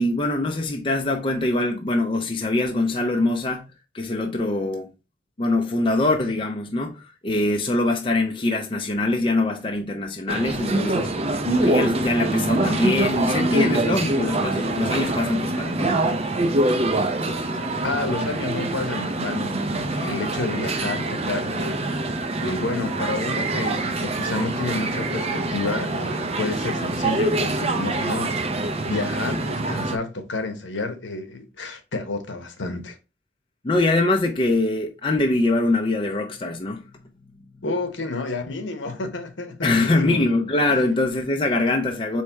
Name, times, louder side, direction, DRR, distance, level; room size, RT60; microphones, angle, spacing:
voice 1, 0.0-3.7 3.9-4.9 5.4-16.0 33.6-36.8 39.6-42.2, left 2 dB, 25° left, 0.5 m, -23 dB
sound 1, 10.3-30.0, right 2 dB, 30° right, 0.5 m, -25 dB
voice 2, 17.6-33.0 37.6-40.2 40.7-40.8, left 3 dB, 75° left, 0.9 m, -30 dB
4.4 x 3.2 x 3.4 m
head